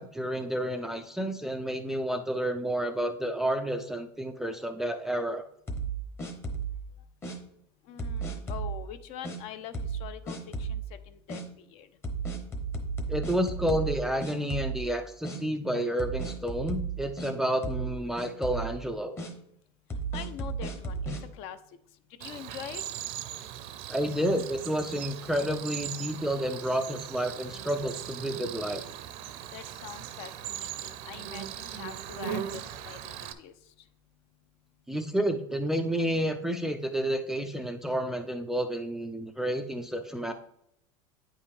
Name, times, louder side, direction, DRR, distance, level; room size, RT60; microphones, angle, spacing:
voice 1, 0.0-5.4 13.1-19.2 23.9-28.8 34.9-40.3, equal, 5° right, 6 dB, 0.3 m, -30 dB
sound 1, 5.7-6.8 7.2-7.4 8.0-8.7 9.2-9.4 9.7-10.0 10.3-10.8 11.3-11.4 12.0-13.9 14.2-14.9 15.2-15.4 16.0-17.3 17.6-17.9 18.2-18.7 19.2-19.3 19.9-21.2, right 4 dB, 20° left, 0.9 m, -34 dB
voice 2, 7.9-11.9 20.1-21.0 21.3-21.6 22.2-22.8 29.5-33.5, left 9 dB, 50° left, 12 dB, 0.6 m, -44 dB
Cricket, 22.2-33.3, right 10 dB, 55° right, 0.6 m, -39 dB
9.0 x 5.5 x 3.3 m, 0.76 s
supercardioid pair, 155°, 13 cm